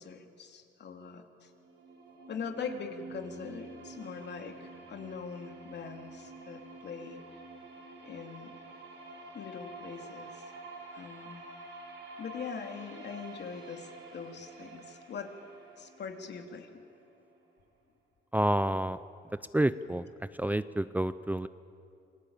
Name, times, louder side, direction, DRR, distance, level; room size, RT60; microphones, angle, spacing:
voice 1, 0.0-1.5 2.3-7.2 8.0-8.5 9.3-10.5 10.9-11.5 12.2-15.3 15.8-16.7, left 6 dB, 60° left, 5 dB, 3.0 m, -42 dB
sound 1, 1.5-17.4, right 2 dB, 75° right, 6.9 m, -49 dB
voice 2, 18.3-19.0 19.5-20.0 20.4-21.5, right 1 dB, 10° right, 14 dB, 0.6 m, -28 dB
28.0 x 21.5 x 8.9 m, 2.7 s
cardioid pair, 90°, 20 cm